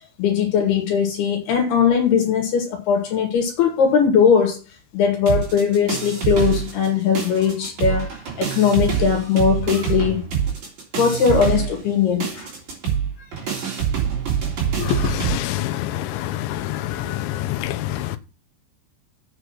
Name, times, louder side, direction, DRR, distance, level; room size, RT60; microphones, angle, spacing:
voice 1, 0.2-4.6 4.9-10.3 11.0-12.5 13.4-13.5, left 7 dB, 65° left, 3.6 m, -19 dB
sound 1, 5.3-6.9 7.1-15.4, right 8 dB, 45° right, 4.4 m, -25 dB
voice 2, 14.8-16.3 17.6-17.8, left 12 dB, 90° left, 3.2 m, -25 dB
8.2 x 6.5 x 6.0 m
omnidirectional pair, 5.2 m